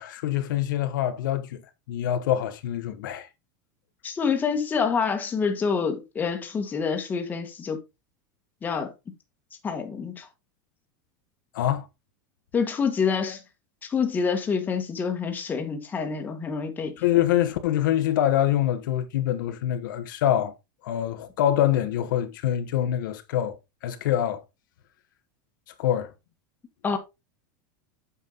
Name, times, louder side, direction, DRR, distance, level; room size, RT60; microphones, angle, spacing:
voice 1, 0.0-1.6 1.9-3.3 11.5-11.9 17.0-20.5 20.8-23.6 23.8-24.4 25.8-26.1, left 11 dB, 80° left, 1.3 m, -25 dB
voice 2, 4.0-7.8 8.6-8.9 9.6-10.3 12.5-13.4 13.9-17.0 26.8-27.0, left 5 dB, 15° left, 1.5 m, -27 dB
8.3 x 5.5 x 3.9 m
supercardioid pair, 155°, 10 cm